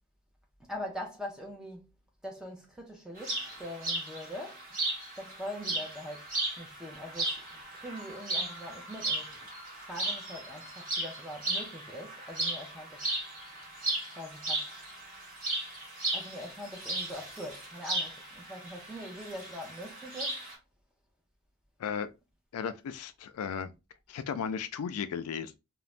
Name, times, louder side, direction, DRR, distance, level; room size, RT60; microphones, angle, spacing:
voice 1, 0.6-2.0 2.2-4.6 5.2-9.3 9.9-13.1 14.2-14.8 16.1-20.5, equal, 5° right, 0.5 m, -43 dB
sound 1, 3.2-20.5, right 2 dB, 35° right, 1.2 m, -36 dB
voice 2, 22.5-23.7 24.1-25.6, left 7 dB, 85° left, 0.3 m, -35 dB
2.5 x 2.1 x 3.1 m
head